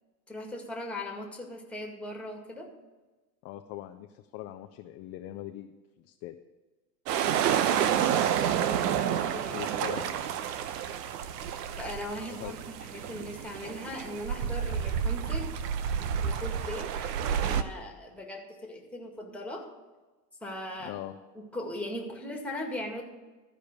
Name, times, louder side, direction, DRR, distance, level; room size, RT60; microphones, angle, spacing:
voice 1, 0.3-2.7 7.1-9.6 11.7-15.5 16.2-16.9 17.4-19.7 20.4-21.0 21.4-23.0, left 1 dB, 5° left, 0 dB, 2.0 m, -39 dB
voice 2, 3.4-6.4 9.5-10.2 12.4-12.5 20.8-21.1, left 14 dB, 30° left, 6 dB, 0.5 m, -41 dB
sound 1, 7.1-17.6, right 9 dB, 70° right, 1.0 m, -29 dB
13.5 x 5.2 x 8.2 m, 1.2 s
supercardioid pair, 125°, 49 cm